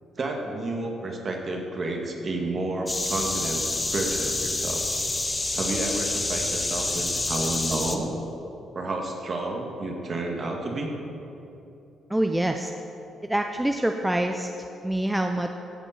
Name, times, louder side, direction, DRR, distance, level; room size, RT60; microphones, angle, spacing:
voice 1, 0.2-3.6 3.9-4.8 5.5-8.1 8.7-10.9, right 2 dB, 40° right, 2 dB, 1.6 m, -30 dB
sound 1, 2.9-8.0, left 2 dB, 20° left, 0.9 m, -28 dB
voice 2, 12.1-12.7 13.2-14.5 14.8-15.5, right 1 dB, 5° right, 5 dB, 0.5 m, -25 dB
15.5 x 5.3 x 5.7 m, 2.9 s
cardioid pair, 90°, 0 cm